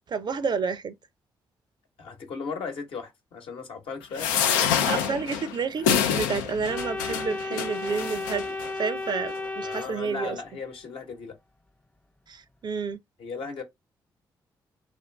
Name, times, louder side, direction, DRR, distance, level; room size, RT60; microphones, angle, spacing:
voice 1, 0.1-0.9 4.9-8.5 8.7-10.4 12.3-13.0, right 5 dB, 45° right, 0.5 m, -30 dB
voice 2, 2.0-4.8 9.6-11.4 13.2-13.6, left 5 dB, 65° left, 1.0 m, -37 dB
sound 1, 4.2-8.7 9.4-9.5 9.7-9.8, left 8 dB, 85° left, 0.4 m, -27 dB
Organ, 6.7-10.6, left 2 dB, 10° left, 0.4 m, -34 dB
2.5 x 2.5 x 3.3 m
hypercardioid pair, 40°, 10 cm